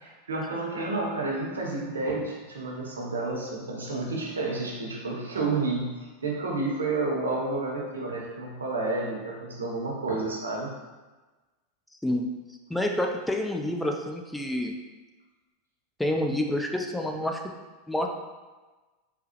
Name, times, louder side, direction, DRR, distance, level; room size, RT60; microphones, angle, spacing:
voice 1, 0.3-10.7, right 3 dB, 80° right, -2 dB, 0.7 m, -30 dB
voice 2, 12.7-14.7 16.0-17.4 17.9-18.1, left 1 dB, 5° left, 2 dB, 0.3 m, -28 dB
3.5 x 2.0 x 2.8 m, 1.2 s
hypercardioid pair, 90°, 0 cm